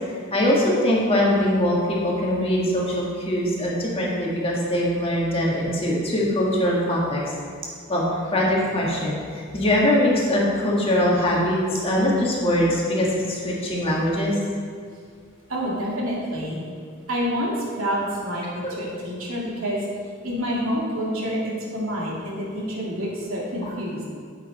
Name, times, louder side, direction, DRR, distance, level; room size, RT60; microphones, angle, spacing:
voice 1, 0.3-7.3 7.9-8.0 8.3-14.3 18.6-18.7, left 1 dB, 30° left, -4 dB, 1.8 m, -22 dB
voice 2, 15.5-16.6 17.1-19.8 20.2-24.0, equal, 85° right, -4 dB, 2.4 m, -28 dB
8.5 x 8.2 x 4.2 m, 2.1 s
head